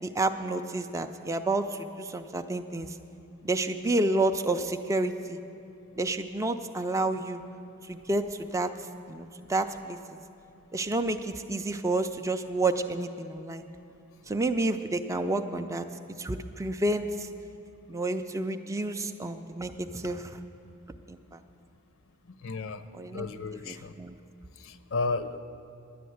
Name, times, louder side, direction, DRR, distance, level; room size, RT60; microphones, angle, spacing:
voice 1, 0.0-3.0 3.4-5.4 5.9-7.4 7.9-8.7 9.1-10.0 10.7-13.7 14.3-15.8 16.2-17.3 17.9-20.4 21.1-21.4 22.9-23.3 23.6-24.1, right 2 dB, 15° right, 6 dB, 0.4 m, -30 dB
voice 2, 22.4-22.8 23.1-23.9 24.6-25.4, left 3 dB, 70° left, 11 dB, 0.6 m, -32 dB
10.5 x 10.0 x 7.8 m, 2.7 s
head